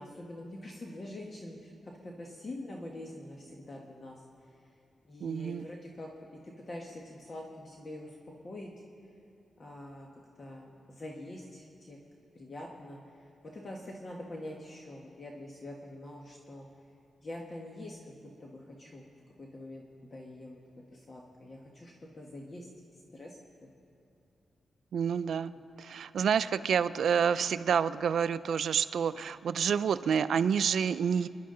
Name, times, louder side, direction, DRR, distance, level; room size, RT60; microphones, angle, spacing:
voice 1, 0.0-1.7 2.0-4.2 5.0-8.2 8.4-8.7 9.6-10.1 10.4-12.0 12.3-16.7 17.2-18.0 18.4-19.1 19.4-19.8 20.1-20.6 20.9-22.7 22.9-23.7, left 1 dB, 35° left, -1 dB, 1.3 m, -45 dB
voice 2, 5.2-5.7 24.9-25.5 25.8-31.3, right 7 dB, 70° right, 14 dB, 0.4 m, -28 dB
27.5 x 11.0 x 3.8 m, 2.6 s
wide cardioid pair, 130°, 0 cm